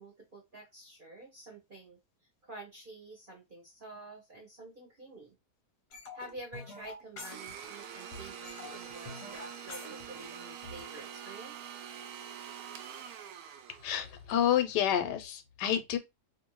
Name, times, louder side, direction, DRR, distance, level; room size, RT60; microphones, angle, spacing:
voice 1, 0.0-2.0 2.4-5.4 6.1-11.7, right 2 dB, 45° right, 0.8 m, -49 dB
sound 1, 5.9-10.9, left 2 dB, 50° left, 0.8 m, -47 dB
Domestic sounds home sounds, 7.2-14.2, right 8 dB, 70° right, 1.0 m, -45 dB
voice 2, 13.8-16.0, left 10 dB, 90° left, 1.3 m, -29 dB
2.7 x 2.6 x 3.0 m
omnidirectional pair, 1.8 m